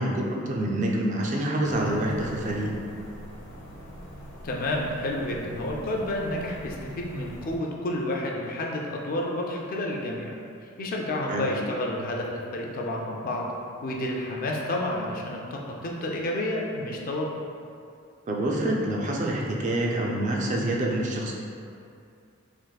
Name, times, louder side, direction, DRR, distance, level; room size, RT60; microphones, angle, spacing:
voice 1, 0.0-2.7 11.3-11.5 18.3-21.3, right 1 dB, 35° right, -2 dB, 0.4 m, -26 dB
sound 1, 1.6-7.6, equal, 85° left, 0.7 m, -43 dB
voice 2, 4.4-10.3 10.6-12.3 12.5-13.4 13.8-17.3, left 1 dB, 45° left, -1 dB, 0.4 m, -30 dB
3.5 x 2.5 x 2.2 m, 2.4 s
head